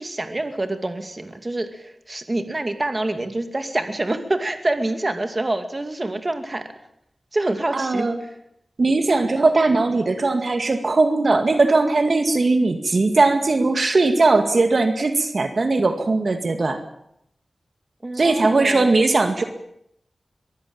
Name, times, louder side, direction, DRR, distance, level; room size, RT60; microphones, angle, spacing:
voice 1, 0.0-6.7 7.3-8.1 18.0-18.9, right 2 dB, 30° right, 8 dB, 2.4 m, -26 dB
voice 2, 7.7-8.2 8.8-16.8 18.2-19.4, right 3 dB, 60° right, 7 dB, 2.1 m, -19 dB
23.0 x 15.5 x 8.8 m, 0.76 s
wide cardioid pair, 90°, 0 cm